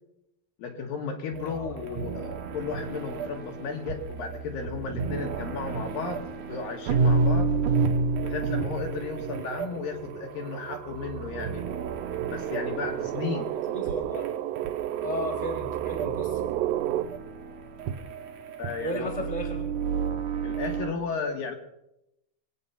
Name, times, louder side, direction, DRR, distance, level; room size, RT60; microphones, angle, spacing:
voice 1, 0.6-6.2 6.5-7.5 8.2-11.6 12.3-13.8 18.6-19.3 20.4-21.5, left 5 dB, 65° left, 3 dB, 2.8 m, -34 dB
sound 1, 1.3-20.9, right 4 dB, 65° right, 2.2 m, -31 dB
sound 2, 5.7-5.8 6.2-17.0, right 13 dB, 90° right, 2.9 m, -34 dB
voice 2, 13.7-14.3 15.0-16.4 18.8-19.6, equal, 15° right, 3 dB, 1.6 m, -34 dB
25.0 x 8.7 x 5.6 m, 0.87 s
omnidirectional pair, 4.9 m